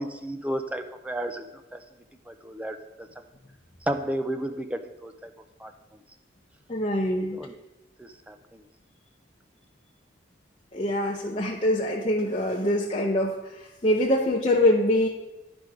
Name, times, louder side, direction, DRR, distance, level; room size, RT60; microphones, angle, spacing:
voice 1, 0.0-1.5 1.7-1.8 2.3-3.1 3.8-5.3 5.6-5.7 7.3-7.5 8.0-8.6, right 1 dB, 5° right, 7 dB, 0.4 m, -33 dB
voice 2, 6.7-7.4 10.7-15.1, left 1 dB, 30° left, -3 dB, 0.7 m, -24 dB
10.5 x 5.2 x 4.7 m, 1.0 s
head